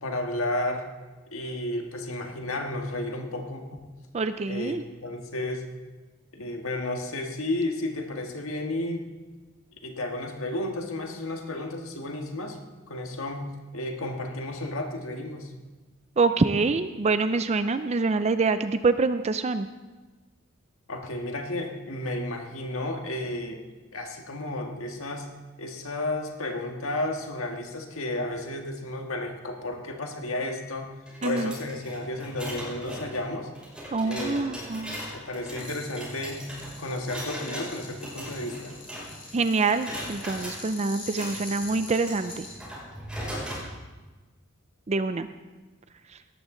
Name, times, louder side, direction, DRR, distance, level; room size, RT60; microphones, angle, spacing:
voice 1, 0.0-0.9 1.3-3.8 4.5-5.6 6.3-9.1 9.8-12.6 12.9-15.5 20.9-23.6 23.9-25.3 25.6-30.9 31.2-33.5 34.0-34.4 35.1-36.5 36.8-38.8, left 1 dB, 80° left, 3 dB, 1.7 m, -32 dB
voice 2, 4.1-4.8 16.2-19.7 31.2-31.5 33.9-35.0 39.3-42.5 44.9-45.3, right 3 dB, 30° right, 11 dB, 0.4 m, -25 dB
sound 1, 31.1-39.3 39.6-40.6 41.0-43.7, equal, 5° right, 6.1 m, -39 dB
sound 2, 35.6-42.5, left 3 dB, 25° left, 3.9 m, -44 dB
17.5 x 13.5 x 3.9 m, 1.2 s
head